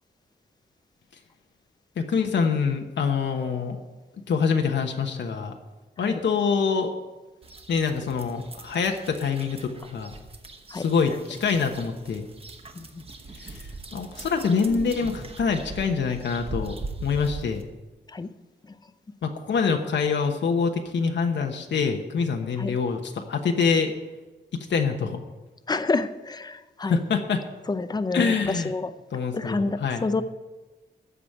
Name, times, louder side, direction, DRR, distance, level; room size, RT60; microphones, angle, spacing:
voice 1, 2.0-3.8 4.3-5.5 6.0-6.9 7.7-10.1 10.7-12.2 13.4-13.6 13.9-16.7 17.0-17.6 19.2-23.9 24.7-25.2 26.8-27.4 28.1-28.7 29.1-30.1, left 5 dB, 75° left, 4 dB, 1.1 m, -25 dB
sound 1, 7.4-17.6, right 2 dB, 30° right, 1.1 m, -40 dB
voice 2, 25.7-27.0 27.7-28.9 29.3-30.2, left 3 dB, 20° left, 12 dB, 0.6 m, -28 dB
14.0 x 5.1 x 9.0 m, 1.2 s
wide cardioid pair, 145°, 19 cm